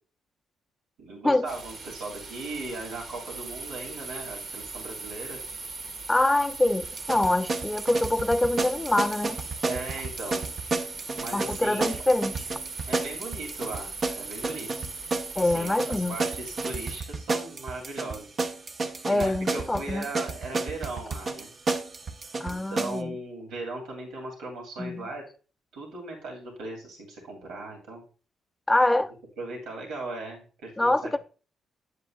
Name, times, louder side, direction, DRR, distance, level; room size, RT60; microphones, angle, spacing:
voice 1, 1.0-5.4 9.6-10.5 11.2-11.9 12.9-14.9 15.3-18.3 19.1-21.5 22.4-25.2 25.7-28.0 29.4-31.2, right 2 dB, 85° right, 2.8 m, -38 dB
sound 1, 1.4-17.0, right 3 dB, 65° right, 2.0 m, -39 dB
voice 2, 6.1-9.4 11.3-12.5 15.4-16.2 19.1-20.0 22.4-23.2 24.8-25.1 28.7-29.1 30.8-31.2, left 1 dB, 10° left, 0.5 m, -25 dB
sound 2, 6.8-23.0, right 3 dB, 40° right, 0.8 m, -32 dB
9.7 x 7.7 x 2.4 m
cardioid pair, 90°, 0 cm